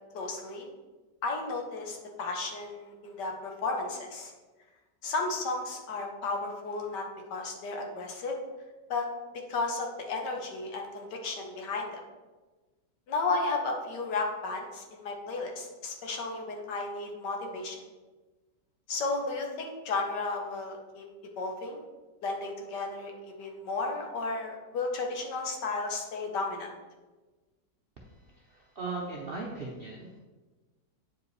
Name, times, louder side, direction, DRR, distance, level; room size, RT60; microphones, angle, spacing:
voice 1, 0.1-0.7 1.2-4.3 5.0-8.4 8.9-9.1 9.5-12.0 13.1-17.8 18.9-21.0 21.4-21.8 22.2-26.7, left 3 dB, 75° left, 2 dB, 1.6 m, -33 dB
voice 2, 28.5-30.2, right 3 dB, 60° right, -1 dB, 0.6 m, -38 dB
8.6 x 4.9 x 3.2 m, 1.2 s
omnidirectional pair, 1.9 m